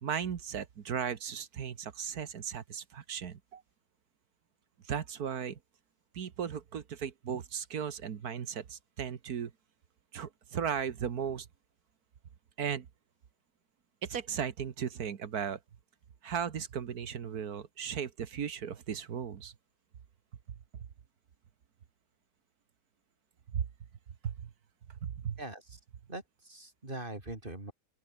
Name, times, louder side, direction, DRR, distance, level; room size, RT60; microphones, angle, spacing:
voice 1, 0.0-3.6 4.8-5.6 6.1-9.5 10.1-11.5 12.6-12.8 14.0-15.6 16.2-19.5 23.5-23.6 24.2-24.5 25.0-25.4, right 8 dB, 55° right, 1.6 m, -36 dB
voice 2, 25.4-25.8 26.1-27.7, right 2 dB, 25° right, 4.5 m, -42 dB
open air
omnidirectional pair, 2.1 m